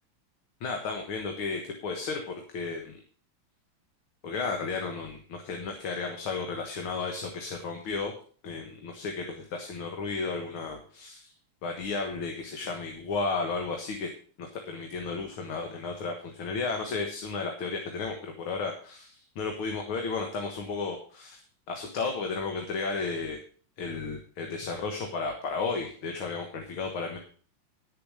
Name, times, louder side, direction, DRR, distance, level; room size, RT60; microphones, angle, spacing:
voice 1, 0.6-3.0 4.2-8.1 8.4-11.3 11.6-14.1 14.4-21.4 21.7-23.4 23.8-27.2, left 4 dB, 75° left, 3 dB, 2.3 m, -33 dB
11.5 x 7.0 x 6.4 m, 0.44 s
omnidirectional pair, 2.3 m